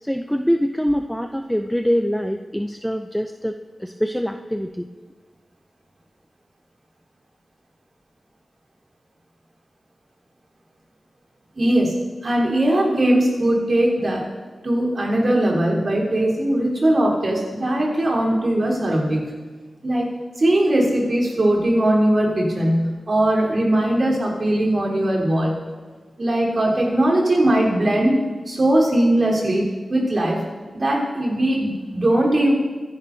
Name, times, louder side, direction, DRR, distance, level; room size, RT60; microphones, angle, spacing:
voice 1, 0.0-4.9, equal, ahead, 5 dB, 0.4 m, -24 dB
voice 2, 11.5-11.9 12.2-14.3 14.6-19.2 19.8-20.1 20.4-25.5 26.2-28.2 28.5-30.4 30.7-32.5, right 1 dB, 45° right, -4 dB, 3.9 m, -20 dB
23.5 x 10.5 x 2.7 m, 1.4 s
wide cardioid pair, 130°, 0 cm